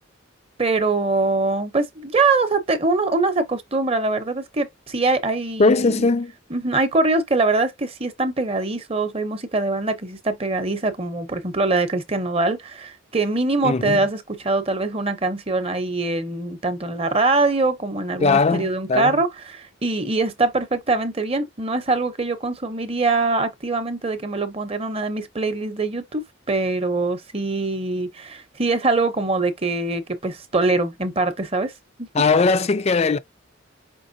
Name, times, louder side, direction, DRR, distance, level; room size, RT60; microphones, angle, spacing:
voice 1, 0.6-6.1 6.5-26.2 26.5-31.7 32.0-32.1, right 3 dB, 30° right, 0.7 m, -23 dB
voice 2, 5.6-6.3 13.6-14.1 18.2-19.2 32.1-33.2, left 4 dB, 30° left, 0.4 m, -19 dB
5.3 x 3.1 x 2.7 m
head